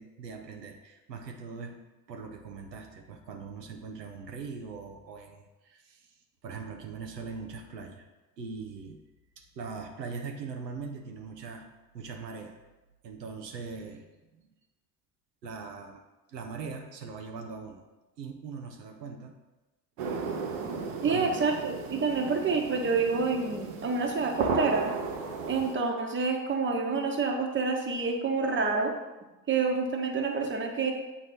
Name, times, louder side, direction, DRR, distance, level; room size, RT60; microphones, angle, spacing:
voice 1, 0.0-1.8 2.1-8.1 8.4-9.0 9.4-11.7 11.9-12.6 13.0-14.1 14.4-14.5 15.4-16.0 16.3-17.8 18.2-19.4 21.1-21.4, right 5 dB, 90° right, 3 dB, 0.7 m, -41 dB
sound 1, 20.0-25.7, right 4 dB, 65° right, 1.0 m, -34 dB
voice 2, 21.0-24.9 25.5-28.9 29.5-30.9, right 4 dB, 25° right, 2 dB, 1.1 m, -28 dB
8.0 x 3.2 x 4.0 m, 1.1 s
figure-of-eight pair, 65°, 48 cm